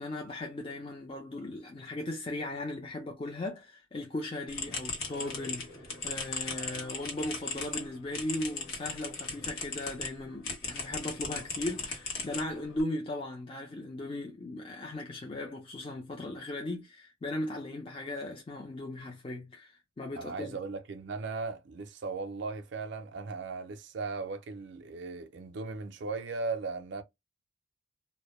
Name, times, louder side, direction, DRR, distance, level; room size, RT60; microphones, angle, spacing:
voice 1, 0.0-20.6, left 1 dB, 25° left, 0.4 m, -37 dB
sound 1, 4.5-10.1 10.4-12.8, left 4 dB, 85° left, 0.9 m, -38 dB
voice 2, 20.2-27.0, right 4 dB, 55° right, 0.4 m, -37 dB
2.1 x 2.0 x 2.9 m
head